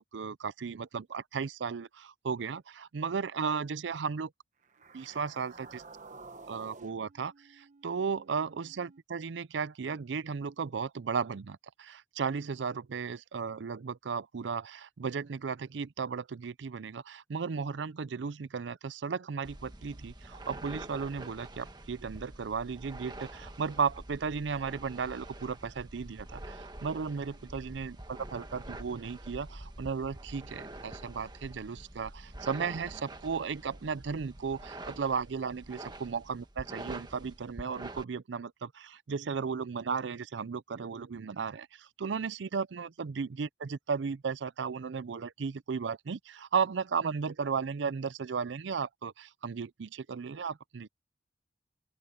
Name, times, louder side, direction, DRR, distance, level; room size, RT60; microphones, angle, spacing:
voice 1, 0.0-4.3 4.9-5.8 6.5-50.9, right 5 dB, 75° right, 0.5 m, -35 dB
sound 1, 4.6-9.0, right 3 dB, 40° right, 1.1 m, -52 dB
sound 2, 19.4-38.0, right 1 dB, 25° right, 1.4 m, -46 dB
open air
head